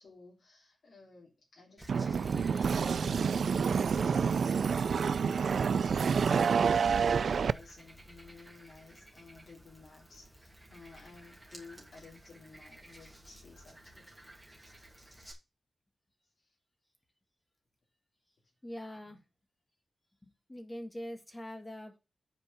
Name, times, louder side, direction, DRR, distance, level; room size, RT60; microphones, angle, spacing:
voice 1, 0.0-6.2 6.6-14.2 16.4-16.5 19.0-19.2, left 4 dB, 75° left, -4 dB, 4.2 m, -55 dB
Frog, 1.8-15.3, right 1 dB, 5° right, 2.4 m, -55 dB
sound 1, 1.9-7.5, right 6 dB, 75° right, 0.4 m, -28 dB
voice 2, 18.6-19.2 20.2-22.0, equal, 15° left, 4 dB, 1.9 m, -43 dB
8.2 x 4.4 x 7.2 m, 0.27 s
wide cardioid pair, 150°, 0 cm